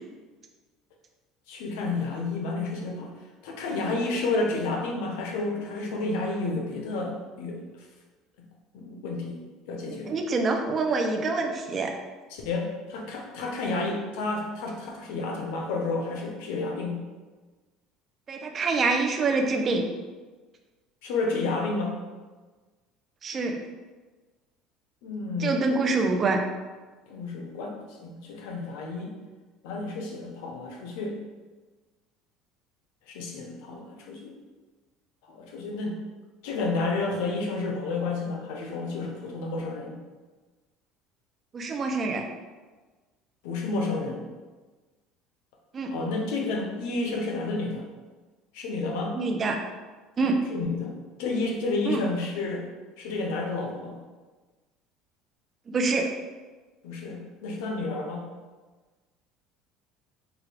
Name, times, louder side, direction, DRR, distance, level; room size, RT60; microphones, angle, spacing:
voice 1, 1.5-3.1 3.4-7.9 8.7-9.4 9.7-10.1 12.3-17.0 21.0-22.0 25.0-25.6 27.1-27.8 28.0-29.1 29.6-31.2 33.1-34.3 35.2-36.0 36.4-40.0 43.4-44.2 45.9-47.9 48.5-49.2 50.5-52.7 53.0-54.0 56.8-58.3, left 3 dB, 85° left, 1 dB, 0.7 m, -30 dB
voice 2, 10.1-11.9 18.3-19.9 23.2-23.6 25.4-26.4 41.5-42.2 45.7-45.9 49.1-49.6 50.2-50.3 51.9-52.0 55.7-56.0, right 3 dB, 30° right, 3 dB, 0.5 m, -25 dB
4.8 x 2.3 x 3.3 m, 1.3 s
cardioid pair, 140°, 0 cm